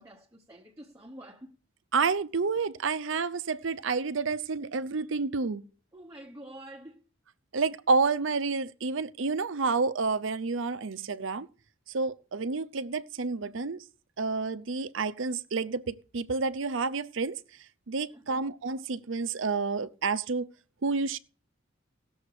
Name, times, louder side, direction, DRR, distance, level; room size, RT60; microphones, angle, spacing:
voice 1, 0.0-1.5 5.9-7.0 18.1-18.5, right 1 dB, 15° right, 1.2 m, -48 dB
voice 2, 1.9-5.6 7.5-11.5 11.9-13.8 14.2-17.4 17.9-20.5 20.8-21.2, right 4 dB, 70° right, 0.7 m, -29 dB
18.0 x 7.1 x 4.9 m
head